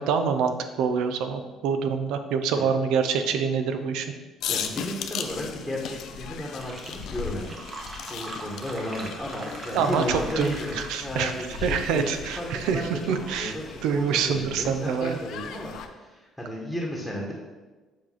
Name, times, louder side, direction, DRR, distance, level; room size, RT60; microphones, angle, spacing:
voice 1, 0.0-4.1 9.7-11.3 11.6-13.5 13.8-15.2, right 6 dB, 85° right, 7 dB, 0.5 m, -26 dB
sound 1, 4.4-15.9, left 7 dB, 70° left, 0.5 m, -37 dB
voice 2, 4.5-7.6 8.1-17.3, left 1 dB, 5° left, -3 dB, 1.1 m, -34 dB
Fill (with liquid), 6.1-6.2 6.4-11.2, right 2 dB, 40° right, 1.0 m, -41 dB
7.3 x 2.5 x 5.6 m, 1.2 s
cardioid pair, 100°, 0 cm